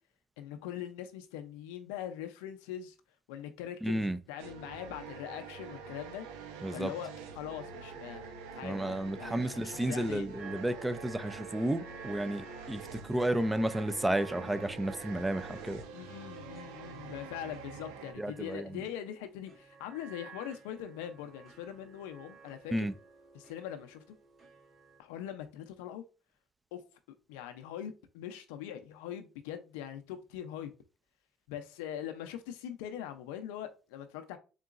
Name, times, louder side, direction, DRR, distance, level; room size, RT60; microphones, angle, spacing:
voice 1, 0.4-2.9 3.3-6.2 6.7-8.3 8.6-10.3 15.9-22.9 23.3-24.0 25.0-26.0 26.7-26.8 27.3-30.7 31.5-34.4, left 10 dB, 85° left, 0.5 m, -42 dB
voice 2, 3.8-4.2 6.6-6.9 8.6-15.8 18.2-18.7 22.7-22.9, right 1 dB, 10° right, 0.4 m, -32 dB
sound 1, 4.4-18.1, right 5 dB, 85° right, 0.6 m, -46 dB
sound 2, 10.4-25.0, right 5 dB, 40° right, 1.6 m, -53 dB
3.9 x 3.7 x 2.4 m
supercardioid pair, 80°, 0 cm